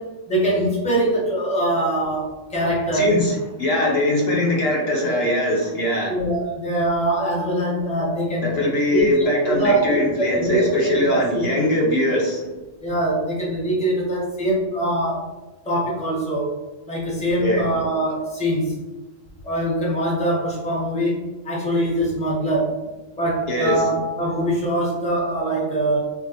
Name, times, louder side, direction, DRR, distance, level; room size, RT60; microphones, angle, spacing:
voice 1, 0.0-3.2 6.1-8.6 8.9-11.4 12.8-15.3 15.6-16.6 16.9-18.8 19.4-22.8 23.1-26.1, right 1 dB, 5° left, -4 dB, 0.8 m, -23 dB
voice 2, 2.9-6.2 8.4-12.5 17.4-17.7 23.5-23.8, left 1 dB, 60° left, -2 dB, 0.9 m, -21 dB
3.7 x 2.5 x 2.8 m, 1.2 s
omnidirectional pair, 1.3 m